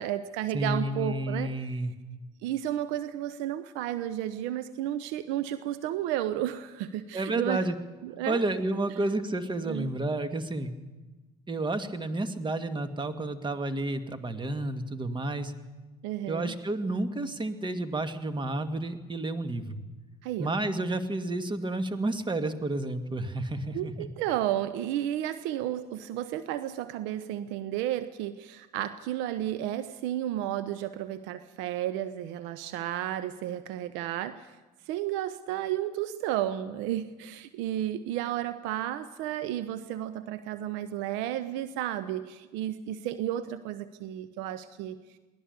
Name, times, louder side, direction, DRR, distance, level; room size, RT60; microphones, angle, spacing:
voice 1, 0.0-1.5 2.4-7.6 8.0-8.4 9.7-9.9 16.0-16.5 20.2-20.6 23.7-34.5 34.9-45.0, right 12 dB, 65° right, 14 dB, 0.9 m, -32 dB
voice 2, 0.5-1.9 7.1-7.8 8.3-10.7 11.5-15.5 16.3-19.8 20.4-24.1, right 2 dB, 25° right, 9 dB, 2.0 m, -31 dB
22.0 x 17.5 x 6.8 m, 1.2 s
hypercardioid pair, 65°, 21 cm